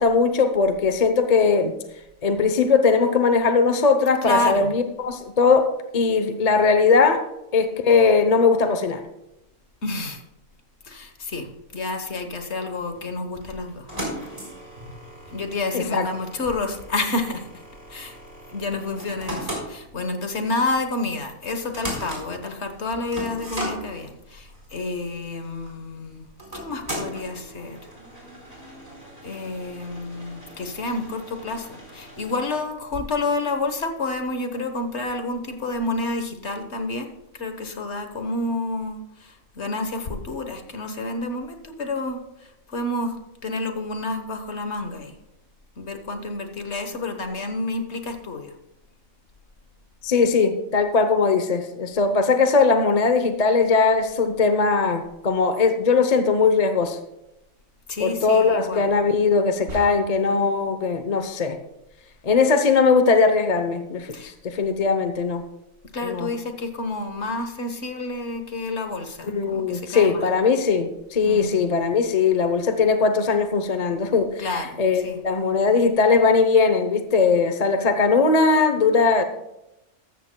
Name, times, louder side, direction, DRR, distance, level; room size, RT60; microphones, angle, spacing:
voice 1, 0.0-1.7 2.2-7.2 7.5-9.0 15.7-16.1 50.0-57.0 58.0-61.6 62.2-65.4 66.0-66.3 69.3-79.2, left 4 dB, 35° left, 8 dB, 0.7 m, -20 dB
voice 2, 4.2-4.7 9.8-10.2 10.8-13.9 15.3-17.5 17.9-18.2 18.5-26.2 26.5-27.8 29.2-37.1 37.4-42.2 42.7-43.1 43.4-45.1 45.8-48.5 57.9-58.9 64.1-64.3 65.9-70.3 71.2-71.6 74.4-75.2, left 2 dB, 55° left, 7 dB, 1.4 m, -29 dB
sound 1, 12.9-32.6, equal, 25° right, 4.3 m, -38 dB
sound 2, 59.7-60.4, right 1 dB, 70° right, 3.4 m, -38 dB
14.0 x 13.5 x 2.2 m, 0.90 s
omnidirectional pair, 1.4 m